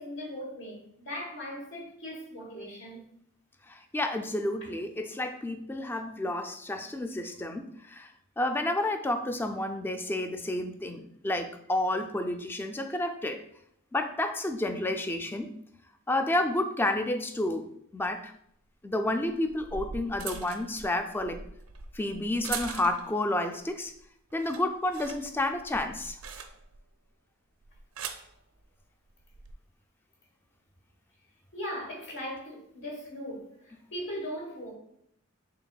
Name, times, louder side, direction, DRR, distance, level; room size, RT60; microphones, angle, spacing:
voice 1, 0.0-3.0 31.5-34.7, equal, 60° left, 1.3 m, -39 dB
voice 2, 3.7-8.1 8.4-13.5 13.9-15.5 16.1-18.3 18.8-21.4 21.9-23.9 24.3-26.2, left 1 dB, 10° left, 0.3 m, -30 dB
sound 1, 18.0-18.1 19.3-23.2 23.7-24.0 24.3-26.9 27.6-28.3 29.2-29.5, right 6 dB, 80° right, 0.5 m, -41 dB
5.9 x 3.7 x 2.3 m
head